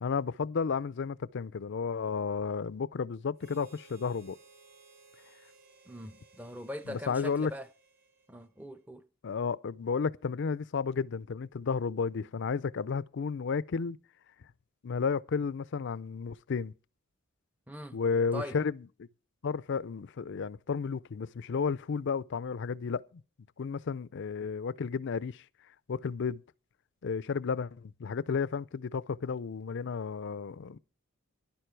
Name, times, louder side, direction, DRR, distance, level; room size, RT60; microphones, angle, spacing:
voice 1, 0.0-4.4 6.9-7.5 9.2-14.0 14.8-16.7 17.9-18.8 19.4-23.0 23.6-25.4 25.9-26.4 27.0-30.8, left 5 dB, 60° left, 0.5 m, -32 dB
Harmonica, 3.4-8.9, right 4 dB, 50° right, 2.6 m, -60 dB
voice 2, 5.9-7.7 8.3-9.0 17.7-18.0 18.3-18.6, equal, 5° right, 0.6 m, -41 dB
11.5 x 10.5 x 4.6 m
head